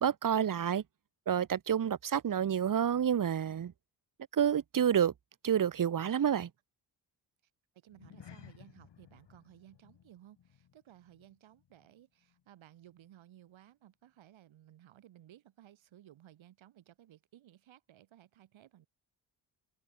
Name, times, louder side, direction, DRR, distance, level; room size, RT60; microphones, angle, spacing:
voice 1, 0.0-0.8 1.3-3.7 4.3-5.1 5.4-6.5, right 8 dB, 45° right, 1.1 m, -29 dB
voice 2, 7.7-18.9, right 12 dB, 80° right, 7.6 m, -58 dB
sound 1, 7.9-12.5 12.8-13.1 13.5-13.6, left 9 dB, 65° left, 3.4 m, -58 dB
supercardioid pair, 50°, 46 cm